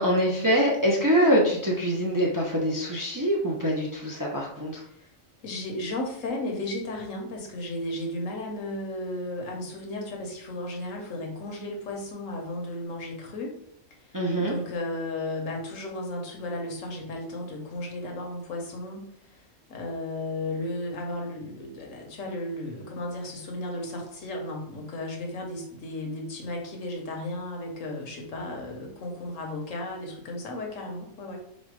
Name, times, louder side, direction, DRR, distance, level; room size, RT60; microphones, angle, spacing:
voice 1, 0.0-4.8 14.1-14.5, equal, 20° right, -3 dB, 0.5 m, -24 dB
voice 2, 5.4-13.5 14.4-19.4 19.7-31.4, left 1 dB, 75° left, 1 dB, 1.3 m, -34 dB
4.2 x 2.3 x 4.7 m, 0.72 s
omnidirectional pair, 1.4 m